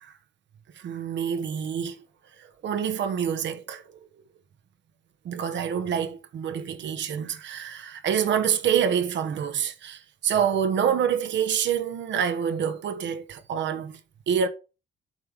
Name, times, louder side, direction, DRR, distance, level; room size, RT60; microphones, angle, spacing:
voice 1, 0.8-2.0 2.6-3.8 5.2-14.0 14.3-14.5, right 8 dB, 65° right, 1.2 m, -26 dB
8.7 x 3.5 x 6.1 m
cardioid pair, 90°, 20 cm